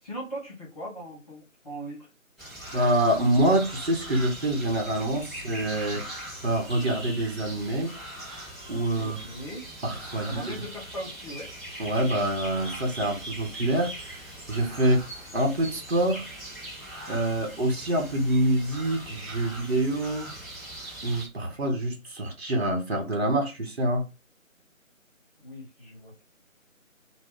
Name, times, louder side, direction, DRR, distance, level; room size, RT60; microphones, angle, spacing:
voice 1, 0.0-2.1 5.3-5.5 5.9-6.1 9.0-9.6 10.3-11.5 21.6-21.7 25.4-26.1, equal, 30° left, 1.1 m, -39 dB
sound 1, 2.4-21.3, right 1 dB, ahead, 0.5 m, -41 dB
voice 2, 2.7-6.1 6.4-8.0 8.7-9.2 9.8-10.6 11.8-13.9 14.5-15.1 15.3-16.3 17.1-20.3 21.0-24.1, right 1 dB, 50° right, 0.8 m, -26 dB
2.2 x 2.0 x 3.6 m
figure-of-eight pair, 160°, 41 cm